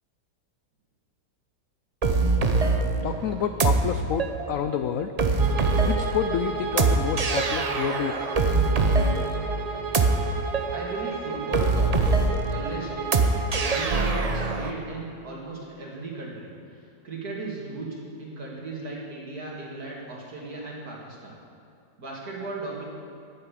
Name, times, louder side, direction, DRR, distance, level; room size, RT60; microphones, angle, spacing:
sound 1, 2.0-14.7, right 3 dB, 70° right, 0.3 m, -24 dB
voice 1, 3.0-5.1 5.8-8.2, left 9 dB, 75° left, 9 dB, 0.7 m, -29 dB
Bowed string instrument, 5.4-13.9, right 6 dB, 90° right, 1.8 m, -33 dB
voice 2, 10.7-12.2 12.4-12.9 13.2-21.4 22.0-22.8, right 2 dB, 55° right, -3 dB, 3.0 m, -36 dB
10.5 x 9.8 x 8.5 m, 2.7 s
omnidirectional pair, 2.0 m